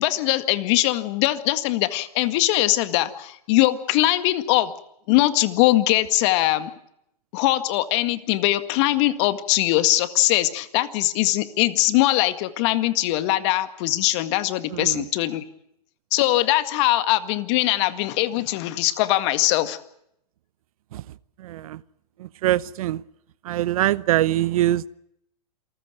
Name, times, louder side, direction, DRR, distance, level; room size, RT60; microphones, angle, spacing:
voice 1, 0.0-4.7 5.1-6.7 7.3-15.4 16.1-19.8, left 16 dB, 45° left, 12 dB, 1.8 m, -21 dB
voice 2, 14.7-15.1 20.9-21.0 21.4-21.8 22.2-23.0 23.4-24.9, right 14 dB, 60° right, 20 dB, 0.8 m, -23 dB
27.5 x 14.5 x 9.3 m, 0.76 s
hypercardioid pair, 130°, 20 cm